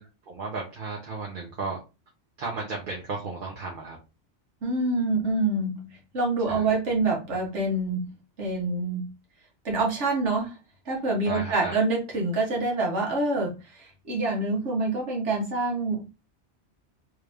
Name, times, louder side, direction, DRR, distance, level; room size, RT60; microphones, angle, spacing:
voice 1, 0.0-1.8 2.4-4.0 6.5-6.7 11.2-11.8, right 3 dB, 50° right, -2 dB, 1.0 m, -34 dB
voice 2, 4.6-8.1 8.4-9.1 9.6-10.5 10.9-16.2, right 2 dB, 90° right, -1 dB, 1.6 m, -26 dB
3.4 x 2.6 x 3.4 m, 0.28 s
omnidirectional pair, 1.2 m